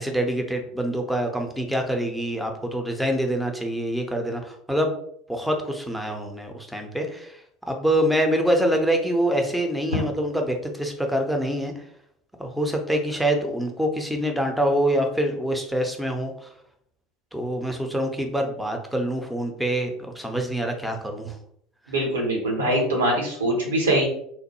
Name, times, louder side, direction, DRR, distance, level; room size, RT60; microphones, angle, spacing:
voice 1, 0.0-4.9 5.3-7.3 7.7-11.7 12.4-16.3 17.3-21.3, right 1 dB, 5° right, 3 dB, 0.5 m, -25 dB
voice 2, 21.9-24.1, right 1 dB, 75° right, -1 dB, 0.9 m, -23 dB
3.0 x 2.1 x 2.9 m, 0.69 s
figure-of-eight pair, 70°, 0 cm